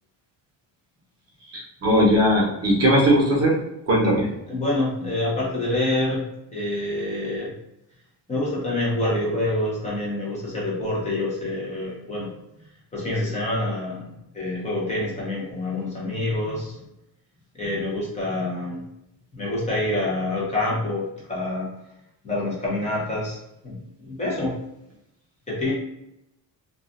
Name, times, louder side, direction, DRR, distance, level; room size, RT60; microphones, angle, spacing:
voice 1, 1.5-3.6 3.9-4.3, equal, 35° right, -4 dB, 0.8 m, -19 dB
voice 2, 4.5-6.2 6.5-7.5 8.3-12.3 12.9-14.1 14.3-16.8 17.5-18.8 19.3-21.7 22.2-23.4 23.6-23.8 24.0-24.6 25.5-25.7, left 2 dB, 15° left, -5 dB, 0.8 m, -26 dB
2.4 x 2.4 x 2.4 m, 0.85 s
cardioid pair, 170°, 46 cm